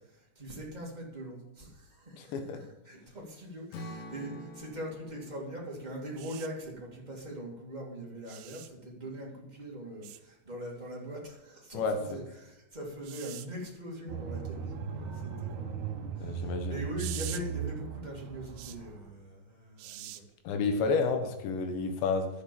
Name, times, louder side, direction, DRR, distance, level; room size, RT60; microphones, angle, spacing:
voice 1, 0.0-20.2, equal, 15° right, -2 dB, 1.5 m, -42 dB
voice 2, 2.2-2.6 11.7-12.2 16.2-16.8 20.5-22.3, left 4 dB, 85° left, 6 dB, 3.7 m, -30 dB
Strum, 3.7-7.9, left 1 dB, 60° left, 2.9 m, -48 dB
sound 1, 6.2-6.5 8.3-8.7 10.0-10.2 13.0-13.5 17.0-17.4 18.6-18.8 19.8-20.2 21.7-21.9, right 13 dB, 85° right, 3.0 m, -43 dB
sound 2, 14.1-19.1, right 7 dB, 65° right, 2.0 m, -38 dB
11.0 x 8.5 x 7.1 m, 0.98 s
omnidirectional pair, 5.0 m